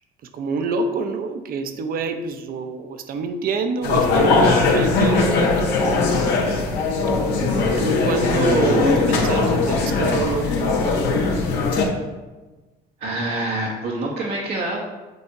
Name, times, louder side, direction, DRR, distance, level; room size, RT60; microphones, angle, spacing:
voice 1, 0.3-5.8 7.8-10.8, right 4 dB, 60° right, 7 dB, 0.7 m, -26 dB
sound 1, 3.8-11.8, left 3 dB, 85° left, 1.2 m, -20 dB
voice 2, 13.0-14.8, right 2 dB, 85° right, -5 dB, 1.2 m, -26 dB
8.1 x 2.8 x 4.7 m, 1.2 s
cardioid pair, 110°, 17 cm